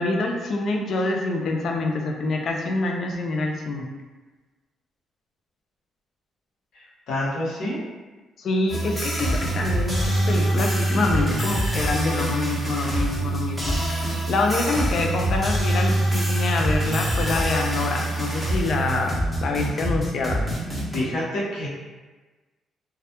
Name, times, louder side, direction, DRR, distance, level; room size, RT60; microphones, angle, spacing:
voice 1, 0.0-3.9 8.4-20.4, left 2 dB, 60° left, 2 dB, 0.4 m, -26 dB
voice 2, 6.7-7.8 20.9-21.7, left 1 dB, 75° left, -7 dB, 0.8 m, -28 dB
sound 1, 8.7-21.0, right 1 dB, ahead, 0.8 m, -25 dB
2.2 x 2.1 x 2.8 m, 1.2 s
cardioid pair, 90°, 0 cm